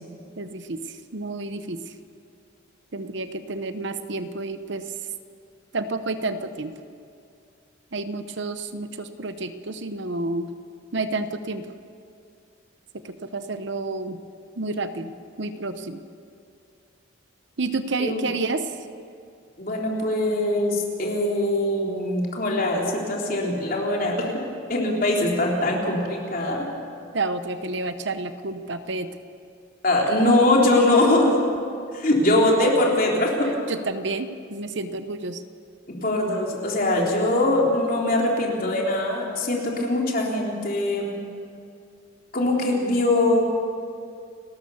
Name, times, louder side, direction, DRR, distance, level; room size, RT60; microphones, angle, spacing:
voice 1, 0.4-1.8 2.9-4.9 5.7-6.8 7.9-10.5 10.9-11.7 12.9-14.2 14.6-15.1 15.4-16.0 17.6-18.7 27.1-29.1 33.7-35.4, right 3 dB, 60° right, 10 dB, 0.9 m, -30 dB
voice 2, 19.6-24.3 24.7-26.7 29.8-31.4 31.9-33.5 35.9-41.2 42.3-43.4, left 1 dB, 45° left, -1 dB, 3.6 m, -22 dB
30.0 x 13.0 x 7.1 m, 2.4 s
head